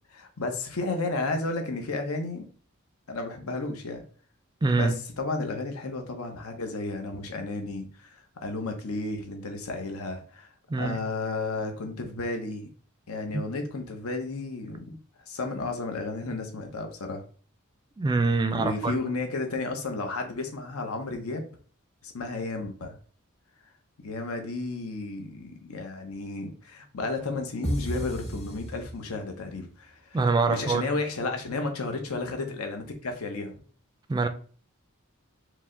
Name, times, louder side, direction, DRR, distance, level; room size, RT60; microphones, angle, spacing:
voice 1, 0.1-2.5 3.1-4.0 4.7-10.5 10.8-12.7 13.1-15.0 15.3-17.2 18.5-21.5 22.0-23.0 24.0-30.2 30.5-33.6, left 3 dB, 85° left, 0.8 m, -33 dB
voice 2, 4.6-4.9 10.7-11.0 13.3-13.5 18.0-19.0 30.1-30.8 34.1-34.3, right 3 dB, 20° right, 0.3 m, -24 dB
sound 1, 27.6-29.5, right 1 dB, 30° left, 1.0 m, -33 dB
4.6 x 2.1 x 3.7 m
head